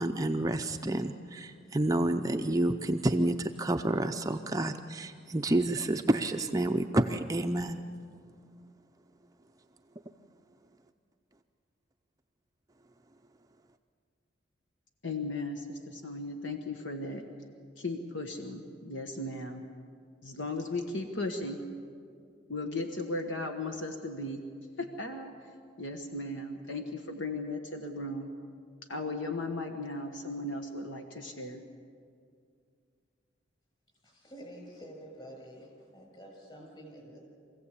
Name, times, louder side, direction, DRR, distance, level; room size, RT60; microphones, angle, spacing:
voice 1, 0.0-7.8, right 1 dB, 20° right, 5 dB, 0.5 m, -29 dB
voice 2, 15.0-17.3 17.8-19.6 20.2-21.6 22.5-24.4 24.8-25.3 25.8-28.3 28.9-31.6, left 2 dB, 75° left, 5 dB, 1.4 m, -36 dB
voice 3, 34.0-37.2, equal, 30° left, 1 dB, 6.8 m, -48 dB
24.0 x 16.0 x 8.4 m, 2.3 s
head